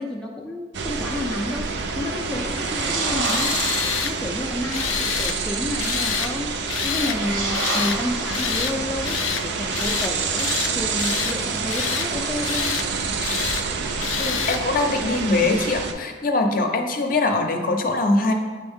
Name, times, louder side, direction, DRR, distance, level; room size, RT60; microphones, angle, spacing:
voice 1, 0.0-1.7 2.0-12.9, left 1 dB, 5° left, -2 dB, 0.3 m, -30 dB
sound 1, 0.7-15.9, right 5 dB, 60° right, 0.4 m, -27 dB
sound 2, 2.1-4.2 6.5-8.9, right 2 dB, 80° right, 0.9 m, -30 dB
Tools, 3.2-4.1 4.7-5.4 5.8-6.3 6.7-7.2 7.5-8.0 8.3-8.8 9.0-9.4 9.7-10.1 10.4-11.4 11.7-12.1 12.4-12.9 13.2-13.6 14.0-14.6, left 10 dB, 90° left, 0.3 m, -27 dB
voice 2, 14.2-18.3, left 2 dB, 45° left, 4 dB, 0.6 m, -22 dB
8.5 x 3.5 x 3.5 m, 1.5 s
head